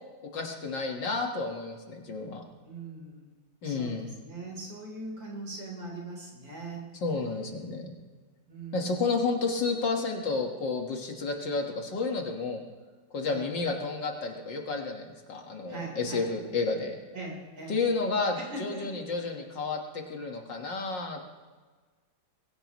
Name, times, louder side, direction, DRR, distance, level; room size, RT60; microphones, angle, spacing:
voice 1, 0.3-2.5 3.6-4.1 7.0-8.0 8.7-12.6 13.1-17.0 17.7-21.3, left 4 dB, 65° left, 2 dB, 2.3 m, -31 dB
voice 2, 2.6-3.3 3.6-6.8 8.5-9.0 13.2-13.5 15.7-16.3 17.1-17.8 18.4-19.1, right 2 dB, 65° right, -1 dB, 4.6 m, -41 dB
22.0 x 16.5 x 3.1 m, 1.4 s
omnidirectional pair, 2.2 m